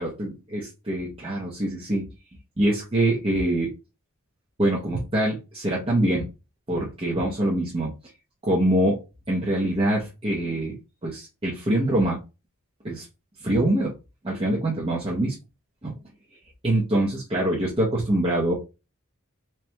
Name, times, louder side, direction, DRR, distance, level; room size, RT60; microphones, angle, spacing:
voice 1, 0.0-2.1 2.6-3.7 4.6-6.3 6.7-7.9 8.4-9.0 9.3-10.8 11.0-12.2 12.8-13.1 13.4-13.9 14.2-15.4 15.8-15.9 16.6-18.5, right 1 dB, 25° right, -4 dB, 0.9 m, -24 dB
4.4 x 2.5 x 3.3 m, 0.28 s
head